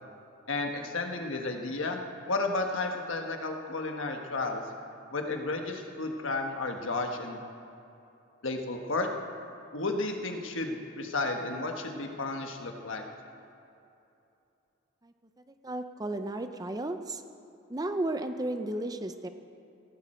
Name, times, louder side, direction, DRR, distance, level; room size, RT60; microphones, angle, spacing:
voice 1, 0.5-2.0 2.3-4.6 5.1-7.4 8.4-9.1 9.7-13.0, left 3 dB, 65° left, 3 dB, 1.4 m, -32 dB
voice 2, 15.5-17.2 17.7-19.3, right 1 dB, 20° right, 8 dB, 0.5 m, -34 dB
17.0 x 15.5 x 4.4 m, 2.8 s
head